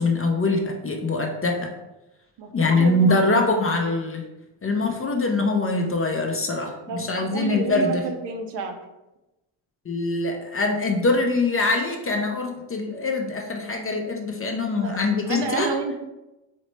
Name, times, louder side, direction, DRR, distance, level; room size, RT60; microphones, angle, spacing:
voice 1, 0.0-1.7 2.5-4.2 4.6-8.1 9.9-15.8, left 2 dB, 30° left, 3 dB, 0.5 m, -23 dB
voice 2, 2.4-3.1 6.9-8.8 14.8-16.0, right 4 dB, 60° right, 5 dB, 0.6 m, -30 dB
4.1 x 2.0 x 3.2 m, 1.0 s
supercardioid pair, 60°, 49 cm